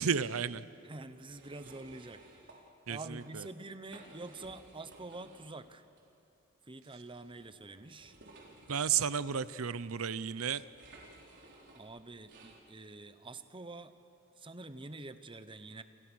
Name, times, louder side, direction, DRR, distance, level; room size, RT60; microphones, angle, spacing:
voice 1, 0.0-0.7 2.9-3.5 8.7-10.6, right 7 dB, 80° right, 16 dB, 0.7 m, -33 dB
voice 2, 0.8-5.8 6.7-8.1 11.7-13.9 14.4-15.8, right 2 dB, 25° right, 11 dB, 1.0 m, -47 dB
sound 1, 1.2-2.6 3.0-3.3 3.7-5.6 5.9-6.0 7.0-12.6, right 2 dB, 55° right, 4.4 m, -57 dB
28.5 x 28.0 x 6.4 m, 2.7 s
head